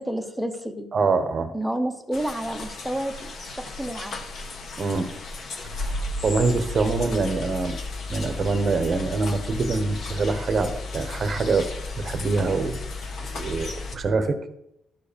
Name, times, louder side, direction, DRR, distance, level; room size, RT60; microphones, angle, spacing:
voice 1, 0.0-0.9 1.5-4.2, right 1 dB, ahead, 7 dB, 0.8 m, -30 dB
voice 2, 0.9-1.5 4.8-5.1 5.7-7.8 8.1-11.7 12.0-12.8 13.3-14.4, right 4 dB, 30° right, 8 dB, 0.9 m, -25 dB
sound 1, 2.1-14.0, left 3 dB, 40° left, 1.3 m, -34 dB
13.0 x 4.8 x 5.1 m, 0.81 s
cardioid pair, 180°, 0 cm